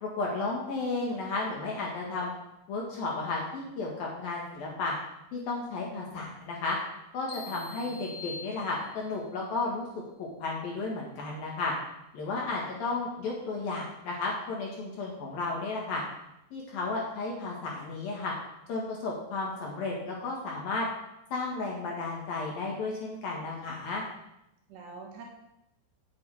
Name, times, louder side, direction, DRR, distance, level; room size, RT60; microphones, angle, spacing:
voice 1, 0.0-2.3 2.7-4.9 5.3-6.8 7.1-9.9 10.2-11.7 12.1-16.0 16.5-18.3 18.7-20.9 21.3-24.0, left 3 dB, 55° left, -2 dB, 2.9 m, -33 dB
sound 1, 7.3-9.2, left 4 dB, 20° left, 2.0 m, -44 dB
voice 2, 7.5-7.9 12.5-12.7 24.7-25.2, right 5 dB, 65° right, 0 dB, 3.3 m, -47 dB
8.8 x 7.5 x 8.8 m, 0.86 s
omnidirectional pair, 6.0 m